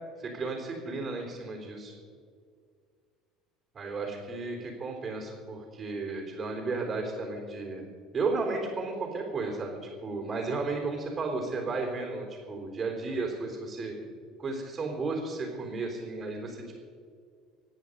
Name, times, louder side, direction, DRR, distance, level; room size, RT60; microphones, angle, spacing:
voice 1, 0.2-1.9 3.7-7.8 8.1-13.9 14.4-16.8, right 3 dB, 30° right, 1 dB, 3.8 m, -33 dB
25.0 x 9.5 x 5.3 m, 2.1 s
figure-of-eight pair, 60°, 0 cm